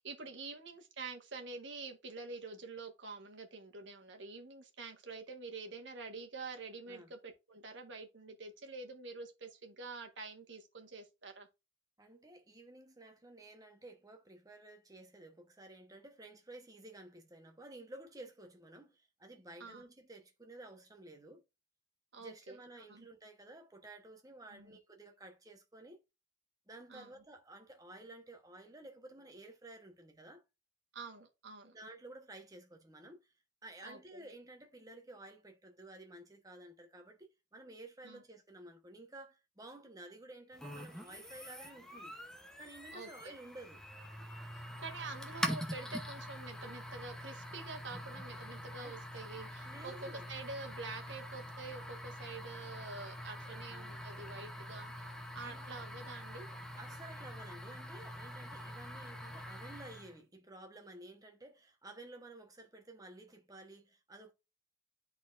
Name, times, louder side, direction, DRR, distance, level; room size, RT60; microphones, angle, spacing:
voice 1, 0.0-11.5 19.6-19.8 22.1-22.6 22.9-23.1 24.5-24.8 26.9-27.1 30.9-31.7 33.8-34.2 38.0-38.2 42.9-43.3 44.5-54.9 55.3-56.5, right 3 dB, 65° right, 1.3 m, -47 dB
voice 2, 12.0-21.4 22.2-26.0 26.7-30.4 31.7-33.3 33.6-42.2 42.6-43.8 45.8-46.0 48.8-49.0 49.6-50.3 53.5-53.9 55.4-55.8 56.8-64.3, right 2 dB, 20° right, 1.0 m, -53 dB
sound 1, 40.6-60.2, equal, 5° left, 0.7 m, -45 dB
11.0 x 4.0 x 2.5 m
head